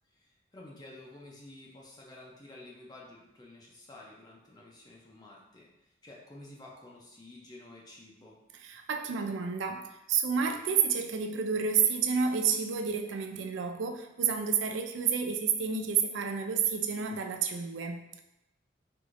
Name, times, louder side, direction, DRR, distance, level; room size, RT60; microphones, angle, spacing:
voice 1, 0.1-8.4, left 2 dB, 20° left, -3 dB, 0.5 m, -51 dB
voice 2, 8.6-18.2, right 6 dB, 70° right, 5 dB, 0.4 m, -30 dB
4.6 x 2.6 x 2.5 m, 0.89 s
head